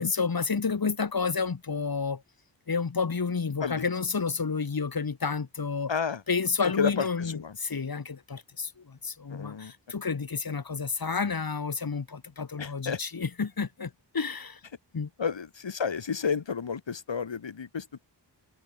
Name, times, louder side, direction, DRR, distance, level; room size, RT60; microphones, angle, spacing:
voice 1, 0.0-2.2 2.7-5.9 6.3-14.6 14.9-15.1, left 5 dB, 55° left, 2.1 m, -30 dB
voice 2, 5.9-6.2 6.6-7.6 9.3-9.7 12.6-13.0 15.2-18.1, left 6 dB, 90° left, 3.9 m, -31 dB
wide cardioid pair, 60°, 43 cm